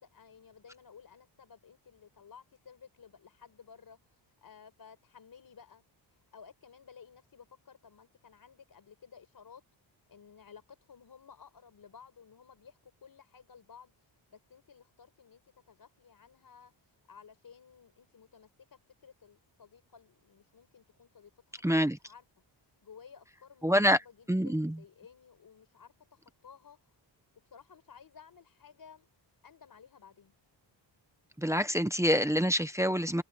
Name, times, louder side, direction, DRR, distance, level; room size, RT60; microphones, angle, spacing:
voice 1, 0.0-5.8 6.1-9.6 10.1-15.4 15.7-16.7 17.1-22.2 22.8-26.9 27.4-29.1 29.4-30.3, left 6 dB, 50° left, 5.0 m, -55 dB
voice 2, 21.6-22.0 23.6-24.0 24.3-24.8 31.4-33.2, equal, 5° right, 0.8 m, -26 dB
wide cardioid pair, 180°, 46 cm